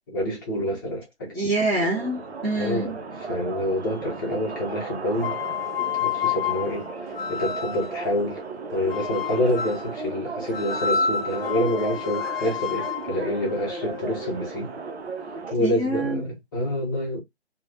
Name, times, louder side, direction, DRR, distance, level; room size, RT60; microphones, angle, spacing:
voice 1, 0.1-1.4 2.6-5.4 6.0-6.9 7.3-8.4 8.7-14.7 15.5-17.2, left 1 dB, 20° left, 0.8 m, -27 dB
voice 2, 1.3-3.0 15.6-16.2, right 2 dB, 10° right, 0.5 m, -26 dB
sound 1, 1.7-15.5, right 4 dB, 75° right, 0.6 m, -36 dB
sound 2, 5.2-8.0 8.9-9.9 10.5-14.5, left 7 dB, 60° left, 0.4 m, -30 dB
3.1 x 2.2 x 2.4 m
figure-of-eight pair, 150°, 33 cm